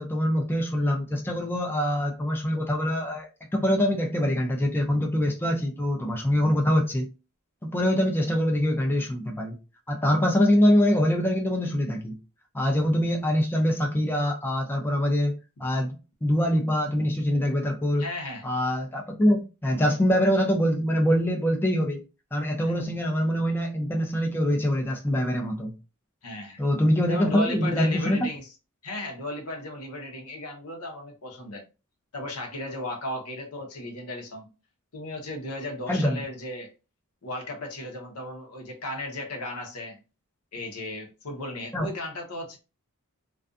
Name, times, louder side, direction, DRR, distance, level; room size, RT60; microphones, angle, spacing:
voice 1, 0.0-7.1 7.6-9.6 9.9-12.2 12.5-15.9 16.2-18.0 18.4-22.0 22.3-25.7 26.6-28.2 35.9-36.2 41.7-41.9, equal, 10° left, 0.4 m, -24 dB
voice 2, 18.0-18.5 22.6-22.7 26.2-26.6 27.1-28.5 28.8-31.6 32.1-34.5 34.9-36.7 37.2-40.0 40.5-42.6, left 1 dB, 80° left, 0.8 m, -35 dB
2.4 x 2.3 x 2.4 m
head